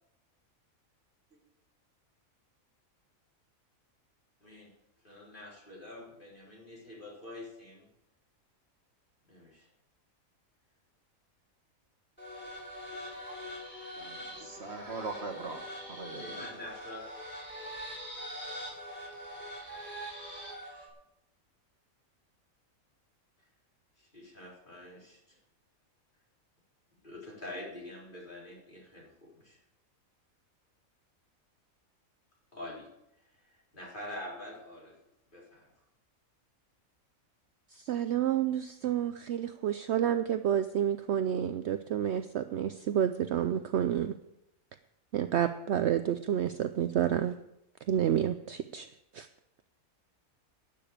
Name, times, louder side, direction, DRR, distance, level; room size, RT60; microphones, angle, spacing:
voice 1, 5.0-7.9 9.3-9.7 16.2-17.1 24.0-25.4 27.0-29.6 32.5-32.9 33.4-35.0 35.3-35.7, left 1 dB, 35° left, -3 dB, 4.1 m, -46 dB
sound 1, 12.2-20.9, equal, 5° left, 3.8 m, -43 dB
voice 2, 14.0-15.6 15.9-16.5, right 3 dB, 50° right, 4 dB, 1.6 m, -41 dB
voice 3, 37.7-44.1 45.1-47.3 47.9-48.9 49.1-49.3, right 10 dB, 65° right, 10 dB, 0.8 m, -29 dB
12.0 x 6.8 x 8.7 m, 0.84 s
omnidirectional pair, 1.5 m